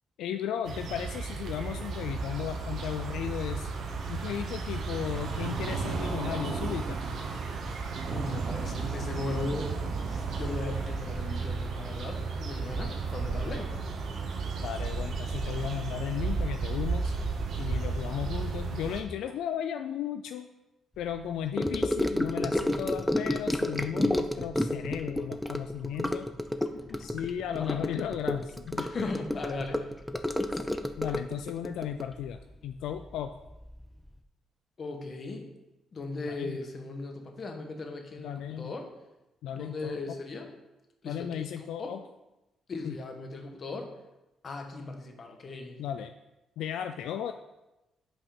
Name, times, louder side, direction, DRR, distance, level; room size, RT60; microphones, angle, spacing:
voice 1, 0.2-3.7 4.1-7.0 14.6-17.1 17.6-20.5 21.0-26.3 27.0-28.9 31.0-33.3 36.3-36.6 38.2-38.7 39.4-40.1 41.0-42.0 42.8-43.0 45.8-46.1 46.6-47.3, left 9 dB, 85° left, 7 dB, 0.3 m, -35 dB
sound 1, 0.7-19.0, right 4 dB, 65° right, 1.0 m, -33 dB
voice 2, 8.1-9.7 10.1-13.7 26.7-27.1 27.5-27.8 28.8-29.8 34.8-35.5 35.9-38.9 39.5-40.5 41.0-41.5 41.8-41.9 42.7-43.9 44.4-45.8, left 3 dB, 45° left, 3 dB, 1.3 m, -38 dB
Gurgling / Sink (filling or washing) / Trickle dribble, 21.6-33.2 33.5-33.8 34.1-34.2, left 1 dB, 5° left, 0.5 m, -30 dB
5.4 x 5.4 x 5.2 m, 0.98 s
cardioid pair, 90°, 0 cm